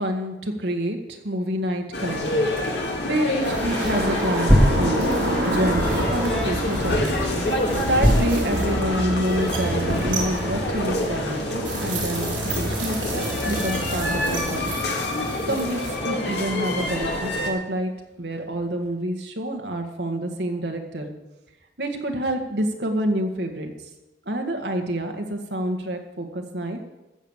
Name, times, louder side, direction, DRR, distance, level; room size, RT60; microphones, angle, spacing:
voice 1, 0.0-2.5 2.8-4.5 4.8-7.3 7.8-14.7 15.0-15.2 15.5-21.1 21.8-23.7 24.3-26.8, right 1 dB, 60° right, 3 dB, 1.8 m, -28 dB
sound 1, 1.8-19.0, equal, 10° left, 2.6 m, -29 dB
sound 2, 1.9-17.5, left 1 dB, 65° left, 2.3 m, -27 dB
sound 3, 3.4-16.0, right 1 dB, 90° right, 4.3 m, -28 dB
14.5 x 7.1 x 7.4 m, 1.0 s
head